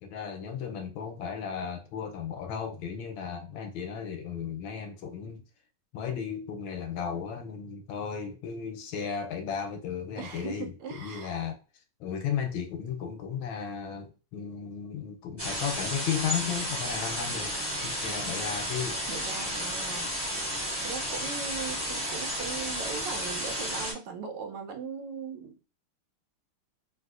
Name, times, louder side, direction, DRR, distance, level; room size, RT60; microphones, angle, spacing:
voice 1, 0.0-5.4 5.9-10.7 11.0-11.6 12.0-17.6 17.8-19.0, left 7 dB, 75° left, 1.3 m, -35 dB
voice 2, 10.2-11.4 18.0-18.4 19.1-20.1 20.8-25.7, right 6 dB, 80° right, 1.5 m, -39 dB
sound 1, 15.4-23.9, equal, 15° right, 0.9 m, -32 dB
3.6 x 2.7 x 2.3 m
omnidirectional pair, 2.4 m